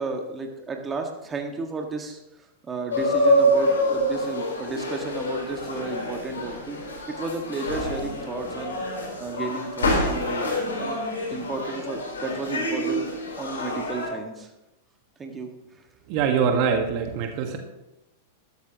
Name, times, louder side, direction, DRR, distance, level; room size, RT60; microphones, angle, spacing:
voice 1, 0.0-6.8 7.2-8.8 9.2-10.5 10.8-11.0 11.3-13.1 13.4-14.5 15.2-15.9, right 3 dB, 20° right, 3 dB, 1.8 m, -33 dB
sound 1, 2.9-14.1, equal, 85° left, 4.0 m, -26 dB
voice 2, 16.1-17.6, right 6 dB, 50° right, 4 dB, 1.6 m, -23 dB
13.0 x 12.5 x 3.0 m, 0.92 s
hypercardioid pair, 105°, 0 cm